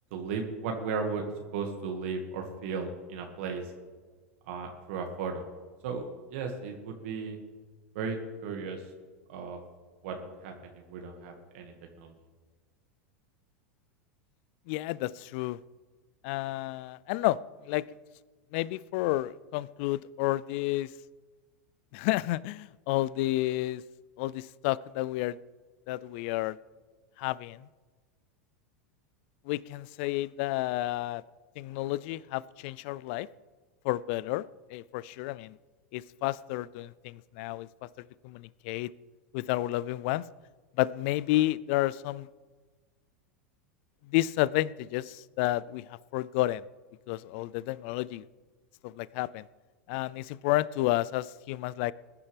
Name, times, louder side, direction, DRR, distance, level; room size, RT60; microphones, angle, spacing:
voice 1, 0.1-1.2 1.5-3.7 4.5-5.4 5.8-7.4 7.9-8.2 8.4-8.8 9.3-9.6 10.0-12.1, right 5 dB, 65° right, 2 dB, 1.9 m, -35 dB
voice 2, 14.7-15.6 16.2-17.4 17.6-17.9 18.5-20.9 21.9-23.8 24.2-25.4 25.9-26.6 27.2-27.7 29.5-31.2 31.6-33.3 33.8-35.5 35.9-37.7 38.2-38.9 39.3-40.3 40.8-42.3 44.1-46.6 47.1-48.2 48.8-49.4 49.9-51.9, left 17 dB, 55° left, 21 dB, 0.4 m, -31 dB
20.5 x 10.5 x 3.4 m, 1.4 s
hypercardioid pair, 95°, 7 cm